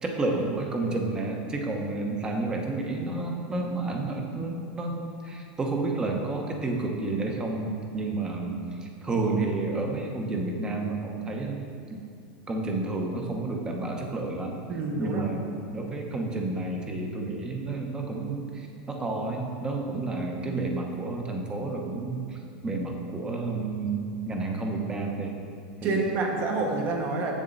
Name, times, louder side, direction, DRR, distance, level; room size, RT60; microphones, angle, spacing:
voice 1, 0.0-11.6 11.9-12.0 12.5-14.6 15.0-25.4 25.8-26.0, right 3 dB, 15° right, 2 dB, 0.9 m, -30 dB
voice 2, 14.7-15.3 25.8-27.3, right 3 dB, 40° right, 1 dB, 1.2 m, -28 dB
7.3 x 7.0 x 4.0 m, 2.4 s
supercardioid pair, 140°, 5 cm